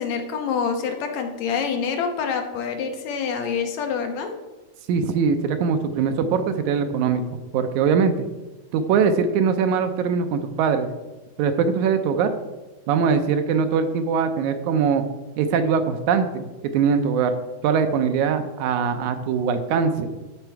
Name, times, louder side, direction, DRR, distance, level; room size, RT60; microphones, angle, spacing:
voice 1, 0.0-4.3, left 6 dB, 75° left, 5 dB, 2.0 m, -26 dB
voice 2, 4.9-8.3 8.7-10.9 11.4-12.3 12.9-15.0 15.4-17.3 17.6-20.1, right 6 dB, 80° right, 8 dB, 1.9 m, -22 dB
13.0 x 4.5 x 4.5 m, 1.1 s
omnidirectional pair, 3.6 m